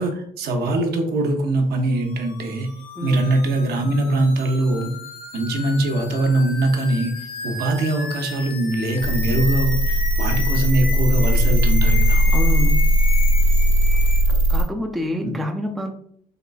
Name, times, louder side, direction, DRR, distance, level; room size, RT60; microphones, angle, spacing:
voice 1, 0.0-2.7 3.0-4.9 5.3-7.1 7.4-12.2 15.2-15.3, right 2 dB, 70° right, 4 dB, 0.7 m, -22 dB
sound 1, 2.0-14.2, left 5 dB, 60° left, 0.6 m, -34 dB
sound 2, 9.0-14.6, equal, 85° right, 1.1 m, -18 dB
voice 2, 12.3-12.9 14.3-15.9, left 1 dB, ahead, 3 dB, 0.3 m, -27 dB
3.7 x 3.2 x 2.2 m, 0.64 s
cardioid pair, 110°, 17 cm